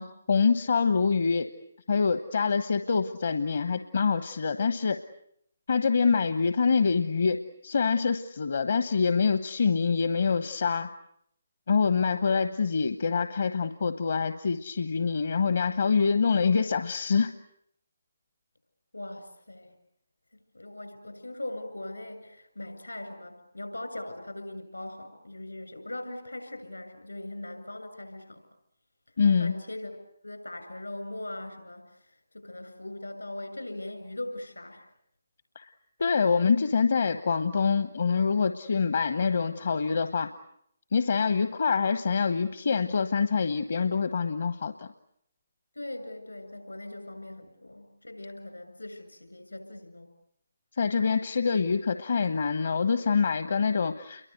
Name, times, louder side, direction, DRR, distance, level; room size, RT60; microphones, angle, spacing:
voice 1, 0.0-1.5 1.9-5.0 5.7-10.9 11.7-17.3 29.2-29.5 35.5-35.7 36.0-40.3 40.9-44.9 50.8-54.3, left 5 dB, 55° left, 10 dB, 1.2 m, -25 dB
voice 2, 18.9-19.7 20.5-28.4 29.4-34.9 45.7-50.1, left 1 dB, 85° left, 8 dB, 7.4 m, -40 dB
29.5 x 23.5 x 8.3 m, 0.72 s
figure-of-eight pair, 140°, 0 cm